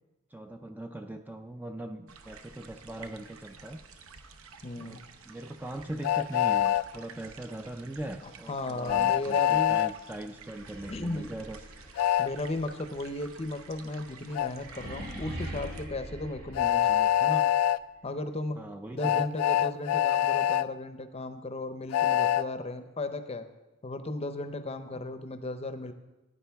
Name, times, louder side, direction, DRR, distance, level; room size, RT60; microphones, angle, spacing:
voice 1, 0.3-3.8 4.8-5.0 5.3-11.6 18.6-19.3 24.9-25.0, right 1 dB, 10° right, 6 dB, 0.3 m, -40 dB
sound 1, 2.1-15.9, right 5 dB, 70° right, 0.8 m, -51 dB
voice 2, 4.6-5.0 8.5-9.8 10.9-11.3 12.2-17.4 18.0-18.6 18.9-23.5 23.8-25.9, left 2 dB, 30° left, 9 dB, 0.6 m, -35 dB
Train, 6.0-6.8 8.9-9.9 12.0-12.3 14.4-14.5 16.6-17.8 19.0-20.7 21.9-22.4, left 11 dB, 90° left, 0.3 m, -25 dB
sound 2, 10.4-17.3, equal, 85° right, 2.2 m, -43 dB
14.0 x 9.7 x 3.5 m, 1.1 s
head